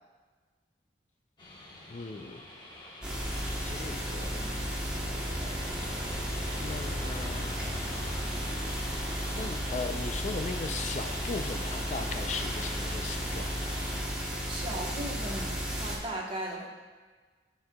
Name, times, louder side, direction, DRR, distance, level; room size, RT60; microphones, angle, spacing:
sound 1, 1.4-14.0, left 1 dB, 25° left, 1.1 m, -45 dB
voice 1, 1.9-2.5 3.6-4.5 6.0-6.2 6.6-7.6 9.3-13.8, left 4 dB, 40° left, 6 dB, 0.4 m, -38 dB
sound 2, 3.0-16.0, equal, 5° right, 1.0 m, -34 dB
voice 2, 14.5-16.7, right 1 dB, 30° right, -2 dB, 1.0 m, -37 dB
13.0 x 4.6 x 2.3 m, 1.4 s
head